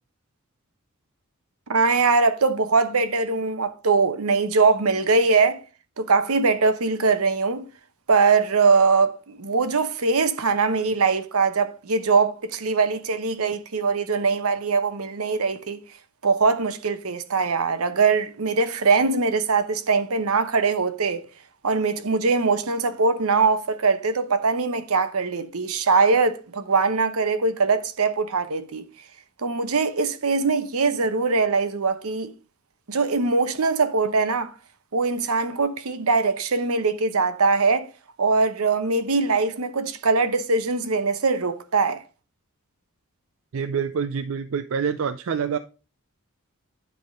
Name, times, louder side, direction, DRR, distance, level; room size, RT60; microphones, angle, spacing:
voice 1, 1.7-5.6 6.0-7.7 8.1-15.8 16.2-21.2 21.6-28.9 29.4-32.3 32.9-34.5 34.9-37.9 38.2-42.0, right 4 dB, 80° right, 0.9 m, -22 dB
voice 2, 43.5-45.6, right 6 dB, 65° right, 0.4 m, -26 dB
10.5 x 3.6 x 5.0 m
head